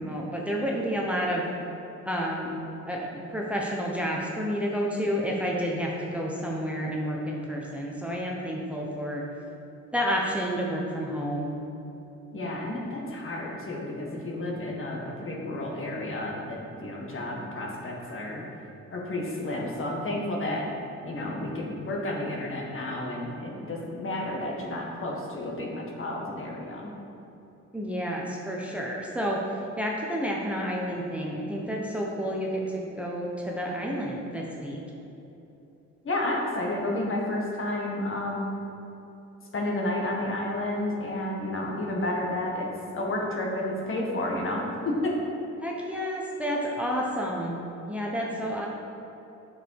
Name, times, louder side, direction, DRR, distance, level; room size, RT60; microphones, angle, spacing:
voice 1, 0.0-1.5 2.0-2.6 2.9-9.2 9.9-11.5 27.7-29.4 29.8-34.8 45.6-48.7, equal, 5° right, -2 dB, 1.0 m, -30 dB
voice 2, 12.3-18.4 18.9-20.7 21.0-27.0 36.0-38.5 39.5-42.7 42.9-45.2, left 1 dB, 45° left, -1 dB, 1.7 m, -31 dB
7.8 x 6.4 x 4.8 m, 3.0 s
cardioid pair, 90°, 30 cm